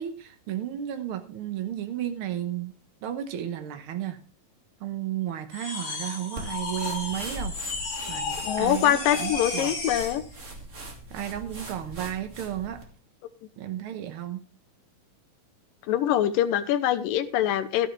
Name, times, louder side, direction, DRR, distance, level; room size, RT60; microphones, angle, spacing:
voice 1, 0.0-2.7 3.0-4.2 4.8-9.8 11.1-12.8 13.6-14.4, right 11 dB, 80° right, 7 dB, 1.2 m, -33 dB
sound 1, 5.5-10.2, left 4 dB, 55° left, 4.0 m, -33 dB
sound 2, 6.4-12.9, right 1 dB, 25° right, 1.8 m, -41 dB
voice 2, 8.4-10.2 15.9-17.9, left 11 dB, 85° left, 12 dB, 2.5 m, -24 dB
13.5 x 10.5 x 3.2 m, 0.37 s
omnidirectional pair, 3.9 m